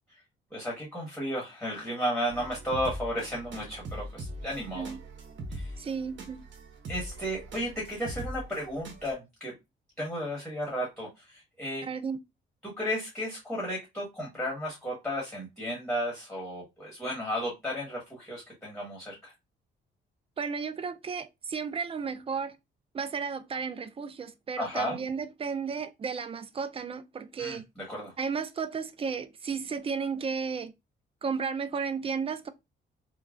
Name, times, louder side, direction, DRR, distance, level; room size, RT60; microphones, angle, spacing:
voice 1, 0.5-5.0 5.5-5.8 6.9-9.5 10.0-11.9 12.6-19.3 24.6-25.0 27.4-28.1, equal, 5° left, 1.2 m, -34 dB
sound 1, 2.3-9.1, right 1 dB, 70° right, 0.9 m, -41 dB
voice 2, 5.8-6.4 11.8-12.2 20.4-22.5 22.9-27.6 28.2-30.7 31.2-32.5, right 5 dB, 30° right, 0.4 m, -33 dB
3.0 x 2.1 x 2.4 m
cardioid pair, 90°, 20 cm